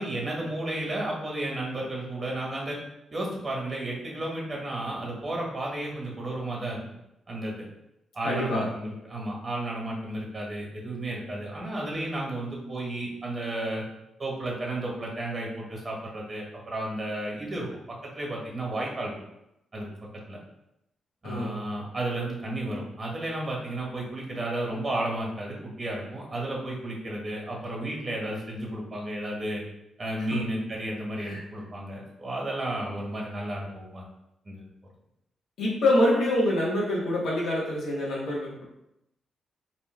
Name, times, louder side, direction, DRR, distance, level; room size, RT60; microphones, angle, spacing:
voice 1, 0.0-2.8 3.1-6.8 7.3-7.6 8.1-13.8 14.2-17.7 18.1-19.1 19.7-19.8 20.3-20.4 21.2-29.6 30.0-34.0 34.4-34.6, right 1 dB, 40° right, -2 dB, 1.2 m, -33 dB
voice 2, 8.2-8.7 21.2-21.6 30.3-30.4 31.2-31.4 35.6-38.6, left 1 dB, 75° left, -4 dB, 1.0 m, -26 dB
3.0 x 2.2 x 3.2 m, 0.84 s
supercardioid pair, 50°, 0 cm